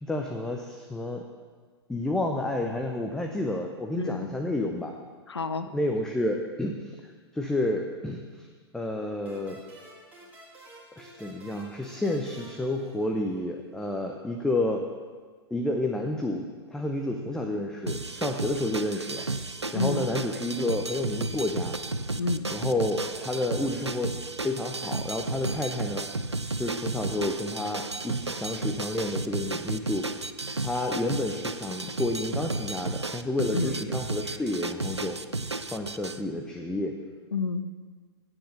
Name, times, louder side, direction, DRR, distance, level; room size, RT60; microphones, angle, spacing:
voice 1, 0.0-1.2 1.9-5.0 5.7-8.5 8.7-9.6 11.0-14.9 15.5-16.4 16.7-19.2 19.7-21.8 22.0-22.2 22.5-24.2 24.4-26.1 26.6-30.3 30.6-35.2 35.7-37.0, left 1 dB, 5° left, 3 dB, 0.6 m, -30 dB
voice 2, 3.9-4.3 5.3-5.7 19.7-20.1 22.2-22.5 33.5-33.8 37.3-37.7, left 4 dB, 75° left, 9 dB, 0.6 m, -29 dB
sound 1, 9.3-13.6, right 1 dB, 10° right, 2.5 m, -51 dB
sound 2, 17.9-36.2, right 3 dB, 90° right, 0.5 m, -33 dB
9.0 x 7.5 x 6.7 m, 1.5 s
figure-of-eight pair, 110°, 14 cm